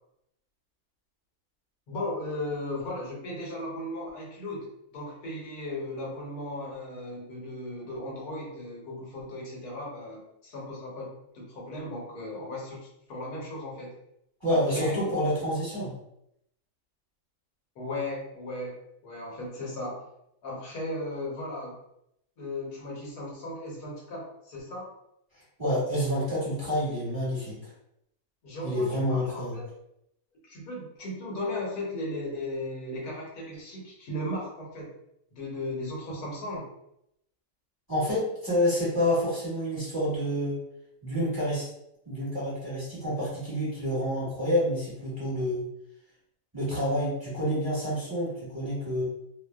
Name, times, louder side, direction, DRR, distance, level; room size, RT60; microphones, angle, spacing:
voice 1, 1.9-13.9 14.5-15.2 17.8-20.0 20.4-21.8 22.4-24.9 28.4-29.6 30.4-34.9 35.3-36.7, left 1 dB, 75° left, -3 dB, 1.3 m, -36 dB
voice 2, 14.4-15.9 25.6-27.7 28.6-29.6 37.9-40.6 41.0-41.7 42.0-45.6 46.5-49.0, equal, 15° right, -10 dB, 1.0 m, -28 dB
2.6 x 2.1 x 2.2 m, 0.79 s
omnidirectional pair, 1.6 m